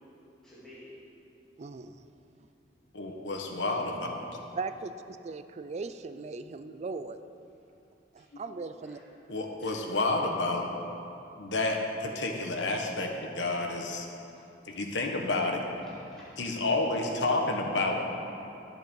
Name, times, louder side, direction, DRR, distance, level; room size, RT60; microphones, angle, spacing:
voice 1, 0.4-1.0 8.2-8.3 8.8-9.0 9.6-9.8 13.4-13.6 14.4-14.5 14.8-14.9 15.8-16.4, left 1 dB, 5° left, -11 dB, 2.4 m, -52 dB
voice 2, 1.6-2.0 4.6-7.2 8.1-9.0, right 4 dB, 40° right, 11 dB, 0.4 m, -38 dB
voice 3, 2.9-4.2 9.3-10.6 11.4-14.1 14.6-15.6 16.4-18.0, left 2 dB, 80° left, 2 dB, 1.2 m, -30 dB
10.5 x 7.6 x 5.4 m, 2.7 s
head